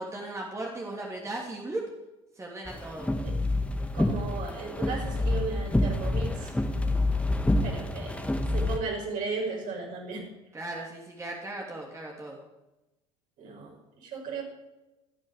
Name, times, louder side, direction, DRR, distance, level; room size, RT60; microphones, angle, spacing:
voice 1, 0.0-1.8 2.3-3.1 10.5-12.4, right 2 dB, 15° right, -1 dB, 3.1 m, -37 dB
sound 1, 2.7-8.8, left 2 dB, 5° left, 2.1 m, -27 dB
voice 2, 3.9-6.6 7.6-10.3 13.4-14.4, right 4 dB, 50° right, 0 dB, 6.4 m, -36 dB
26.5 x 9.6 x 5.1 m, 1.0 s
figure-of-eight pair, 65°, 17 cm